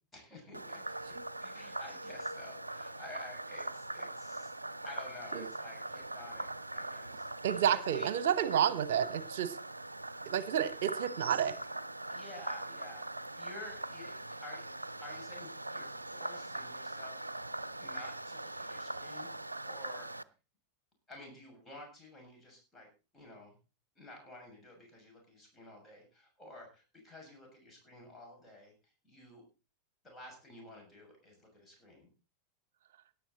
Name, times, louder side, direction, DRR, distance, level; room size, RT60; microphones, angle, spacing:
voice 1, 0.1-1.1 1.4-4.5 4.8-8.1 12.1-17.2 17.8-19.3 19.6-20.1 21.1-23.6 24.0-29.4 30.0-32.1, left 1 dB, 15° left, 1 dB, 6.8 m, -52 dB
Frog, 0.5-20.2, right 2 dB, 85° right, 0.6 m, -42 dB
voice 2, 7.4-9.6 10.3-11.5, right 9 dB, 60° right, 15 dB, 1.1 m, -30 dB
17.5 x 10.5 x 4.1 m, 0.32 s
figure-of-eight pair, 90°, 0 cm